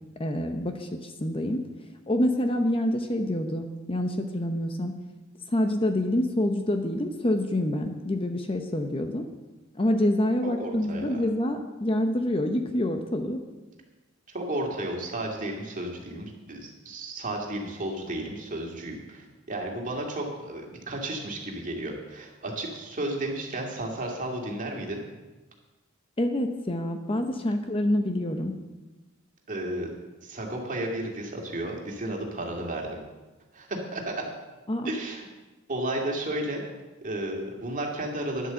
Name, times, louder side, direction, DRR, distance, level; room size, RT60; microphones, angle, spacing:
voice 1, 0.2-1.6 2.1-4.9 5.5-9.2 9.7-13.4 26.2-28.5 34.7-34.9, left 1 dB, 25° left, 6 dB, 0.8 m, -27 dB
voice 2, 10.4-11.2 14.3-25.0 29.5-29.9 30.2-33.0 33.5-34.2 34.8-35.3 35.7-36.6 37.0-38.5, right 1 dB, 40° right, 0 dB, 2.2 m, -33 dB
10.5 x 8.1 x 6.9 m, 1.1 s
head